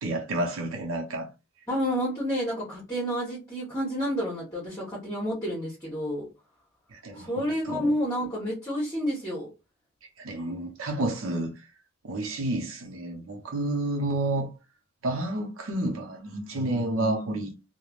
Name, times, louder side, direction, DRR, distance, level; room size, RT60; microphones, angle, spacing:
voice 1, 0.0-1.3 6.9-7.9 10.2-11.5 12.0-14.5 15.0-17.5, right 1 dB, 85° right, 0.7 m, -30 dB
voice 2, 1.7-6.3 7.2-9.5, equal, 15° left, 1.1 m, -29 dB
3.2 x 2.1 x 2.4 m
head